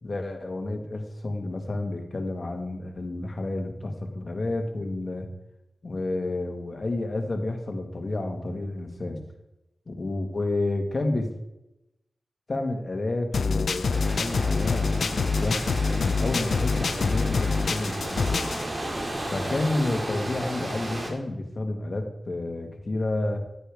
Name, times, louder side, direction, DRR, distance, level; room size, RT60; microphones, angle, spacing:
voice 1, 0.0-5.3 5.8-9.2 9.9-11.3 12.5-15.6 15.9-18.6 19.3-23.4, left 2 dB, 50° left, 3 dB, 1.8 m, -30 dB
sound 1, 13.3-18.6, left 4 dB, 75° left, 0.4 m, -26 dB
sound 2, 13.9-21.1, right 1 dB, 40° right, 2.4 m, -33 dB
10.0 x 9.9 x 3.6 m, 0.91 s
cardioid pair, 60°, 0 cm